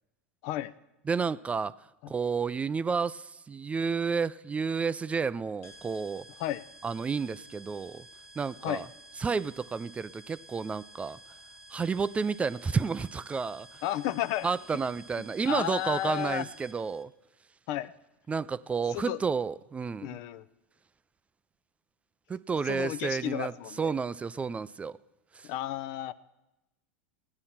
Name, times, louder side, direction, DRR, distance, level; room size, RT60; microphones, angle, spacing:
voice 1, 1.0-1.7 2.1-6.3 6.8-8.1 8.4-8.9 9.2-11.2 11.7-13.8 14.4-17.1 18.3-20.2 22.3-25.0 25.3-25.5, right 5 dB, 15° right, 16 dB, 0.4 m, -31 dB
sound 1, 5.6-17.0, right 1 dB, 70° left, 1.4 m, -52 dB
voice 2, 13.8-14.5 15.5-16.4 17.7-17.9 18.9-19.2 20.0-20.4 22.7-23.9 25.5-26.1, left 13 dB, 55° left, 16 dB, 0.6 m, -32 dB
16.5 x 9.7 x 5.8 m, 0.96 s
hypercardioid pair, 95°, 7 cm